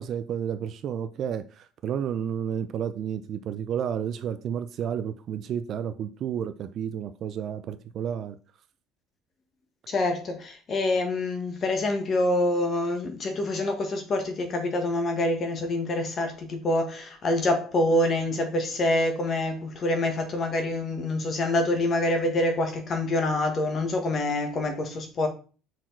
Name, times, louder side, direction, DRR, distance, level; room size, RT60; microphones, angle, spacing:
voice 1, 0.0-8.4, right 8 dB, 35° right, 0.4 m, -31 dB
voice 2, 9.9-25.3, left 1 dB, 25° left, 1.3 m, -26 dB
5.9 x 4.5 x 4.5 m
cardioid pair, 175°, 0 cm